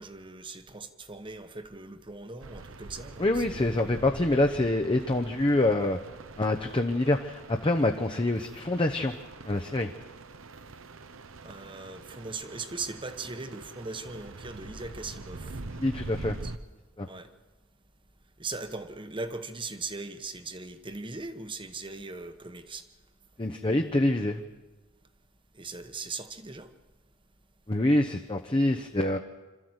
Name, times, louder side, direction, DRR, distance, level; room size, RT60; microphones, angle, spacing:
voice 1, 0.0-3.3 3.5-3.7 11.4-15.6 16.4-16.5 17.1-17.3 18.4-22.8 25.6-26.7, right 3 dB, 25° right, 9 dB, 1.1 m, -39 dB
sound 1, 2.4-16.6, right 3 dB, 70° right, 0.9 m, -44 dB
voice 2, 3.2-6.0 6.4-9.1 9.5-9.9 15.8-16.3 17.0-17.1 23.4-24.4 27.7-29.2, left 1 dB, 25° left, 4 dB, 0.8 m, -26 dB
26.0 x 13.5 x 8.0 m, 1.2 s
head